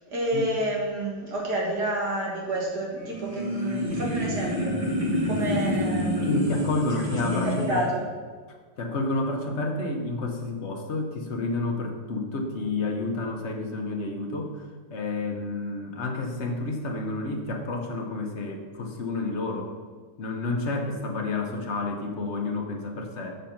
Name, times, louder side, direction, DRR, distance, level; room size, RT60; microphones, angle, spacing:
voice 1, 0.1-4.8 5.2-6.7 7.4-8.1, right 1 dB, 60° right, -2 dB, 2.3 m, -29 dB
sound 1, 3.0-7.9, equal, 20° right, 1.1 m, -28 dB
voice 2, 6.2-7.9 8.5-19.7 20.2-23.3, left 2 dB, 45° left, 3 dB, 1.1 m, -30 dB
7.0 x 6.6 x 5.8 m, 1.5 s
omnidirectional pair, 2.1 m